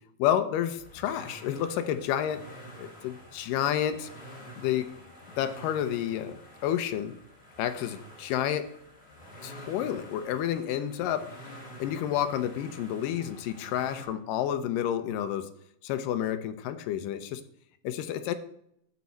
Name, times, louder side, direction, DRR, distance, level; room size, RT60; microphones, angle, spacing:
voice 1, 0.2-2.5 2.8-4.1 4.6-4.9 5.4-7.1 7.6-8.7 9.4-11.3 11.8-15.5 15.8-17.4 17.8-18.3, left 10 dB, 80° left, 10 dB, 2.3 m, -30 dB
sound 1, 0.7-14.0, equal, 25° left, 1.5 m, -49 dB
12.5 x 4.9 x 4.1 m, 0.73 s
omnidirectional pair, 3.9 m